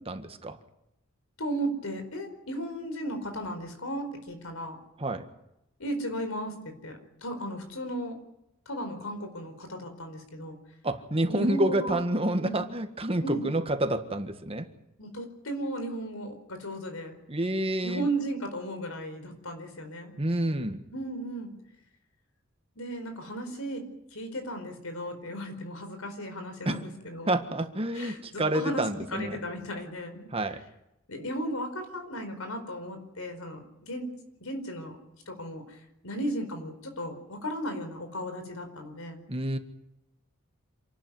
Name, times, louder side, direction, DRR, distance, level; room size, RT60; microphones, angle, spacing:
voice 1, 0.1-0.6 5.0-5.3 10.8-14.7 17.3-18.1 20.2-20.8 26.6-26.8 27.3-29.4 30.3-30.6 39.3-39.6, right 1 dB, 25° right, 8 dB, 1.6 m, -28 dB
voice 2, 1.4-4.8 5.8-8.2 8.7-10.6 11.3-12.0 12.4-12.6 13.2-13.5 15.0-17.1 17.8-20.2 20.9-21.5 22.8-27.3 27.9-30.3 31.1-34.1 34.4-35.0 35.3-35.8 36.0-39.2, right 1 dB, 80° left, 7 dB, 4.7 m, -35 dB
27.5 x 12.0 x 9.5 m, 0.87 s
head